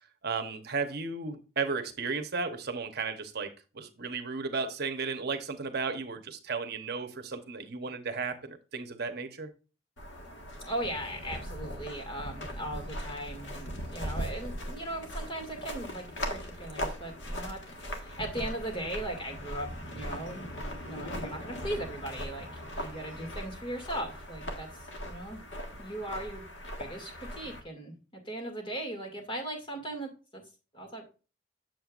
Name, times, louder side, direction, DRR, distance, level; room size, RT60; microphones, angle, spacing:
voice 1, 0.2-3.5 3.7-9.5, right 4 dB, 60° right, 6 dB, 1.0 m, -34 dB
sound 1, 10.0-27.6, equal, 80° left, 1.5 m, -39 dB
voice 2, 10.6-20.5 20.8-24.7 25.1-25.4 25.8-26.4 26.8-30.4 30.7-31.0, right 1 dB, 30° left, 2 dB, 2.3 m, -38 dB
7.6 x 7.3 x 2.5 m, 0.33 s
head